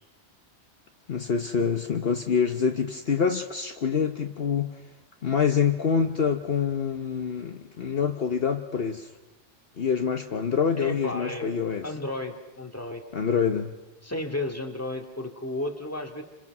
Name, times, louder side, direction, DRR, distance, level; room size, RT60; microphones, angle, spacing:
voice 1, 1.1-4.8 5.2-9.1 9.8-11.9 13.1-13.7, left 6 dB, 55° left, 6 dB, 1.2 m, -26 dB
voice 2, 10.8-13.5 14.0-16.2, left 1 dB, 10° left, 3 dB, 2.2 m, -33 dB
29.5 x 26.5 x 6.1 m, 1.1 s
omnidirectional pair, 1.2 m